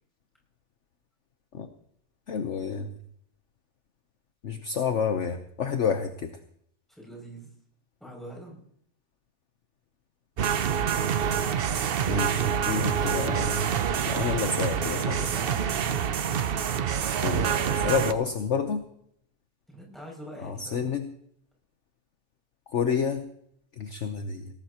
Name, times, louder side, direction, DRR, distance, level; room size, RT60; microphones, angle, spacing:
voice 1, 2.3-2.9 4.4-6.4 12.1-15.2 17.2-18.8 20.4-21.1 22.7-23.3 23.8-24.5, left 6 dB, 55° left, 6 dB, 1.2 m, -29 dB
voice 2, 6.9-7.5 8.0-8.6 14.7-15.7 17.9-18.3 19.7-20.9, equal, ahead, -3 dB, 6.6 m, -43 dB
sound 1, 10.4-18.1, right 8 dB, 55° right, 0.7 m, -26 dB
18.5 x 18.5 x 2.9 m, 0.68 s
omnidirectional pair, 1.6 m